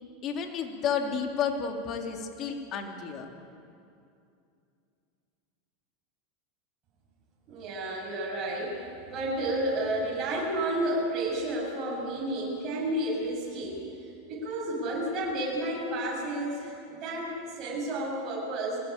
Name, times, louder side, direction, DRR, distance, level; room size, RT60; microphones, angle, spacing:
voice 1, 0.2-3.3, left 6 dB, 40° left, 3 dB, 3.3 m, -31 dB
voice 2, 7.5-8.8 9.1-13.9 14.3-18.8, right 1 dB, 40° right, -4 dB, 7.8 m, -31 dB
23.0 x 18.0 x 8.8 m, 2.5 s
hypercardioid pair, 85°, 0 cm